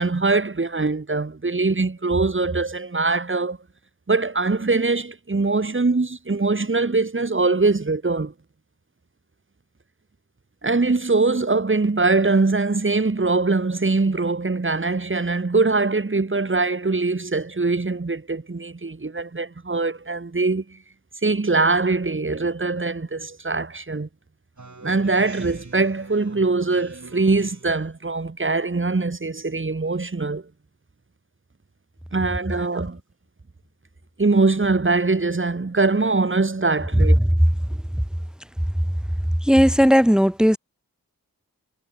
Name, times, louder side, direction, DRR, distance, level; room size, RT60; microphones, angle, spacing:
voice 1, 0.0-3.6 4.1-8.3 10.6-20.6 21.2-24.1 24.8-30.4 32.1-33.0 34.2-37.2, right 3 dB, 35° right, 1.3 m, -22 dB
Speech synthesizer, 24.6-27.9, right 3 dB, 50° right, 3.0 m, -44 dB
voice 2, 39.4-40.6, equal, ahead, 0.4 m, -16 dB
wide cardioid pair, 50°, 36 cm